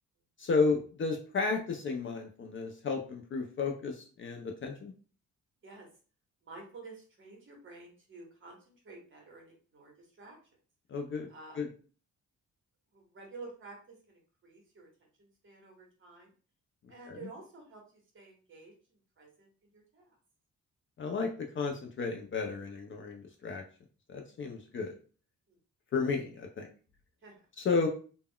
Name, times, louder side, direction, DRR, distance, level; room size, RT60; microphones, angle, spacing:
voice 1, 0.4-4.9 10.9-11.3 11.6-11.7 17.1-17.2 21.0-23.6 24.1-24.9 25.9-26.7 27.6-27.9, left 4 dB, 40° left, 3 dB, 0.4 m, -32 dB
voice 2, 6.4-10.4 11.3-11.6 12.9-16.3 16.9-17.8 18.1-19.5 19.7-20.2 24.5-24.7 25.5-25.6 27.2-27.3, right 3 dB, 40° right, 0 dB, 1.0 m, -51 dB
2.2 x 2.1 x 3.5 m, 0.38 s
wide cardioid pair, 160°, 31 cm